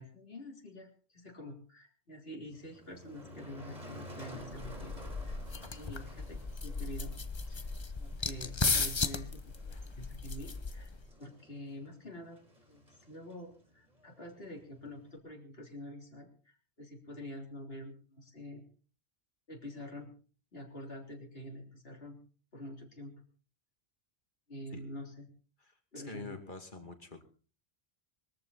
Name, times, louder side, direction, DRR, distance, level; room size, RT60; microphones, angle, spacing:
voice 1, 0.0-5.5 5.7-7.2 7.5-7.7 8.0-12.4 12.7-18.6 19.5-20.1 20.5-22.2 22.5-23.1 24.5-25.3 25.9-26.4, left 1 dB, 65° left, 1 dB, 3.8 m, -47 dB
Motor vehicle (road), 2.5-15.2, equal, 40° right, 4.4 m, -52 dB
sound 1, 4.4-11.1, left 4 dB, 30° left, 0.8 m, -36 dB
voice 2, 26.0-27.2, left 3 dB, 50° left, 6 dB, 2.6 m, -46 dB
21.5 x 14.0 x 4.2 m, 0.38 s
omnidirectional pair, 1.1 m